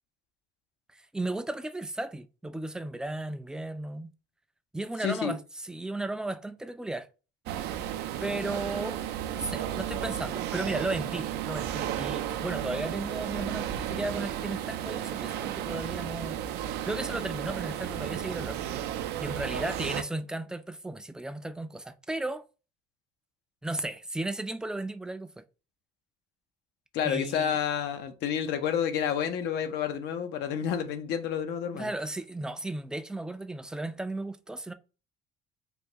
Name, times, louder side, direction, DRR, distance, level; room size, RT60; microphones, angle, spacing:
voice 1, 0.9-4.1 4.7-7.1 8.2-9.0 9.3-16.4 16.8-18.6 19.2-22.4 23.6-25.4 27.0-27.6 31.7-34.7, right 2 dB, 5° right, 0.3 m, -35 dB
voice 2, 5.0-5.3 26.9-31.9, left 8 dB, 85° left, 0.6 m, -30 dB
sound 1, 7.5-20.0, right 10 dB, 80° right, 0.4 m, -33 dB
3.4 x 2.6 x 2.9 m
cardioid pair, 110°, 17 cm